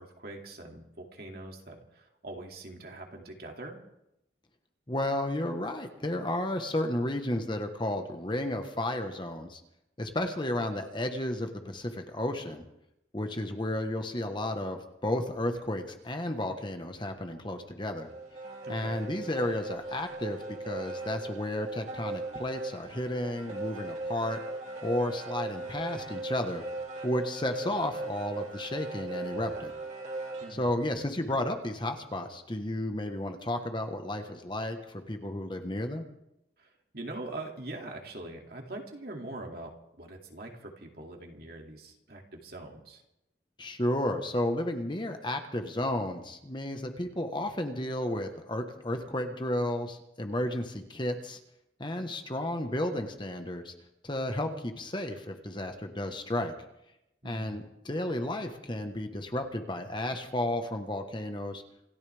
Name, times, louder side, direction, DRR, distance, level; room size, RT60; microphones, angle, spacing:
voice 1, 0.0-3.8 18.6-19.0 30.4-30.7 36.6-43.0 57.2-57.6, right 2 dB, 55° right, 1 dB, 2.6 m, -43 dB
voice 2, 4.9-9.6 10.0-12.6 13.1-18.1 18.7-24.4 24.8-26.6 27.0-29.7 30.5-36.0 43.6-51.4 51.8-53.7 54.0-56.5 57.2-61.6, left 1 dB, 25° left, 6 dB, 1.3 m, -32 dB
sound 1, 18.0-30.6, right 2 dB, 40° right, 2.8 m, -38 dB
27.5 x 13.5 x 3.5 m, 0.85 s
head